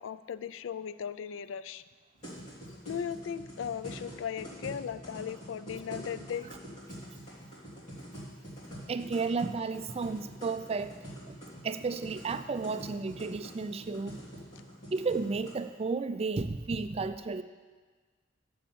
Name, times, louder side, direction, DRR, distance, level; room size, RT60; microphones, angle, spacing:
voice 1, 0.0-1.8 2.9-6.5, left 8 dB, 70° left, 15 dB, 0.3 m, -37 dB
sound 1, 2.2-15.5, equal, 35° left, 3.3 m, -45 dB
voice 2, 8.9-10.9 11.3-11.4 11.6-14.2 14.9-17.4, right 4 dB, 30° right, 11 dB, 0.4 m, -33 dB
7.1 x 7.1 x 7.1 m, 1.4 s
head